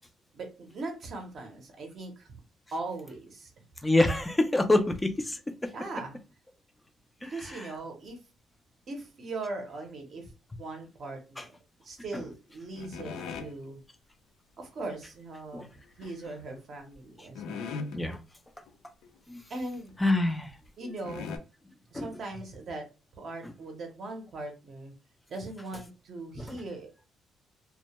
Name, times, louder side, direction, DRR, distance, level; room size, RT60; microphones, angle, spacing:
voice 1, 0.3-2.4 2.7-3.5 5.7-6.2 7.2-8.2 8.9-10.3 10.6-11.6 11.8-13.8 14.6-15.7 16.0-17.7 19.5-20.0 20.8-21.4 21.9-22.8 23.2-24.9 25.3-27.0, right 2 dB, 40° right, 3 dB, 0.6 m, -40 dB
voice 2, 3.8-5.7 7.5-7.7 11.4-11.5 15.5-15.7 17.9-18.2 19.3-19.4 20.0-20.6 21.9-22.1 26.4-26.5, left 2 dB, 10° left, 7 dB, 0.3 m, -26 dB
sound 1, 12.7-13.5 16.0-16.4 16.9-17.0 17.4-18.2 18.7-18.8 19.0-19.2 19.7-19.8 20.6-20.7 21.0-21.4, left 5 dB, 80° left, 0.4 m, -38 dB
2.1 x 2.1 x 2.8 m, 0.32 s
cardioid pair, 175°, 0 cm